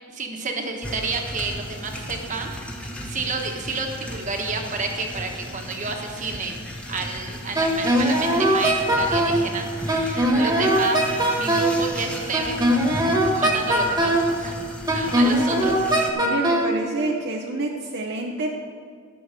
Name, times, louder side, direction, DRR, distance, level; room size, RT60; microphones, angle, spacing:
voice 1, 0.1-2.5 3.0-6.6 6.9-12.8 13.3-14.6 14.9-15.8, right 3 dB, 40° right, 3 dB, 1.2 m, -30 dB
sound 1, 0.8-16.1, equal, 5° left, 1.1 m, -35 dB
Wind instrument woodwind instrument, 7.5-9.4 9.9-11.8 12.3-14.3 14.9-16.7, right 1 dB, 20° right, 1.4 m, -20 dB
voice 2, 16.1-18.5, right 2 dB, 60° right, 0 dB, 0.8 m, -27 dB
12.5 x 6.3 x 6.5 m, 2.2 s
head